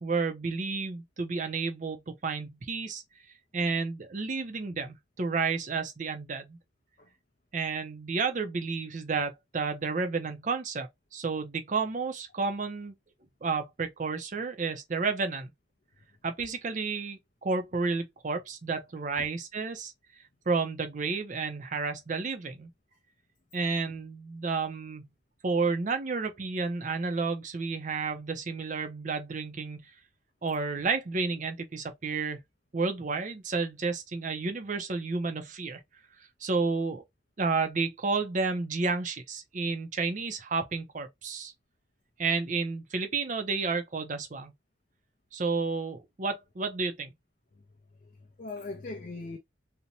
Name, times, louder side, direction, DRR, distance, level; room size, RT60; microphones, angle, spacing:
voice 1, 0.0-3.0 3.5-6.6 7.5-10.9 11.1-12.9 13.4-15.5 16.2-19.9 20.5-22.7 23.5-25.1 25.4-29.9 30.4-32.4 32.7-35.8 36.4-37.0 37.4-41.5 42.2-44.5 45.3-47.1, right 4 dB, 40° right, 0.5 m, -31 dB
voice 2, 48.0-49.4, left 3 dB, 40° left, 0.4 m, -40 dB
2.6 x 2.1 x 2.8 m
head